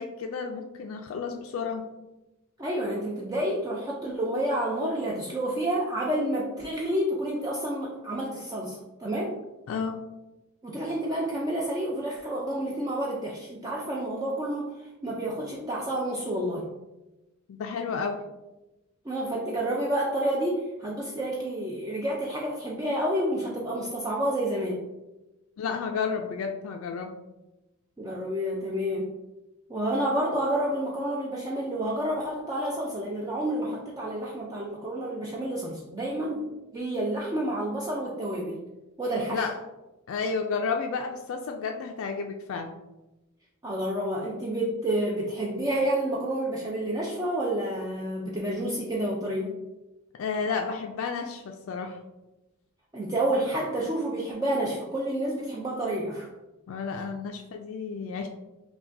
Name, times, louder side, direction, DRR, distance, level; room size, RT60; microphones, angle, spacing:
voice 1, 0.0-1.8 9.7-10.0 17.5-18.2 25.6-27.1 39.3-39.6 40.1-42.7 50.1-52.0 56.7-58.3, left 5 dB, 65° left, 4 dB, 0.3 m, -31 dB
voice 2, 2.6-9.3 10.6-14.7 15.0-16.7 19.0-24.8 28.0-29.1 29.7-36.5 36.7-38.6 39.0-39.5 43.6-49.5 52.9-56.3, right 1 dB, 15° right, -3 dB, 0.4 m, -29 dB
5.6 x 2.2 x 2.6 m, 1.0 s
head